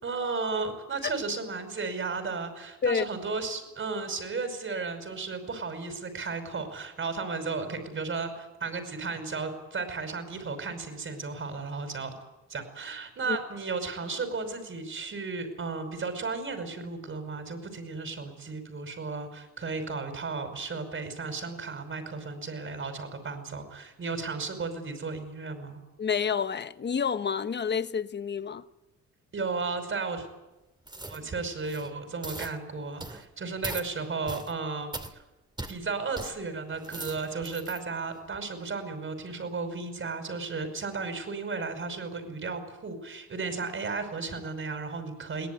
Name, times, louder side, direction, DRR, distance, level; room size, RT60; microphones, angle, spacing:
voice 1, 0.0-12.1 12.5-25.8 29.3-30.3 31.1-35.2 35.7-45.5, right 4 dB, 40° right, 5.4 m, -34 dB
voice 2, 26.0-28.6, left 6 dB, 35° left, 1.1 m, -29 dB
sound 1, 30.9-31.2 31.6-31.9 32.2-32.5 33.0-33.2 33.6-33.9 34.3-34.5 34.9-35.1 35.6-35.7 36.2-36.3 36.7-37.8 38.3-38.4, right 2 dB, 15° right, 2.6 m, -39 dB
22.5 x 18.5 x 9.6 m
cardioid pair, 90°, 30 cm